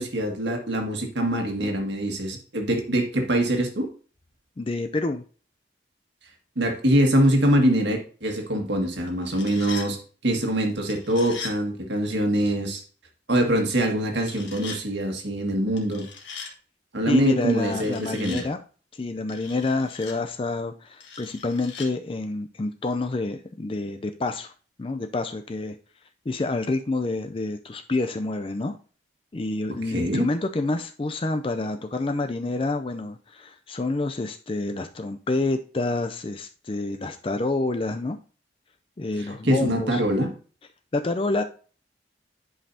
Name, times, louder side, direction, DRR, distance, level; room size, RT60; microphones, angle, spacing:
voice 1, 0.0-3.9 6.5-10.0 10.2-12.8 13.3-16.0 16.9-18.4 29.9-30.3 39.2-40.3, right 1 dB, 75° right, 3 dB, 1.7 m, -23 dB
voice 2, 4.6-5.2 17.1-18.6 19.0-24.5 24.8-25.8 26.3-28.8 29.3-38.2 39.0-40.0 40.9-41.4, left 2 dB, 30° left, 7 dB, 0.4 m, -28 dB
sound 1, 9.1-9.9 10.9-11.6 14.2-14.8 15.8-16.5 17.5-18.5 19.3-20.2 21.0-21.9, left 5 dB, 80° left, 1.5 m, -39 dB
10.0 x 5.4 x 2.7 m, 0.39 s
head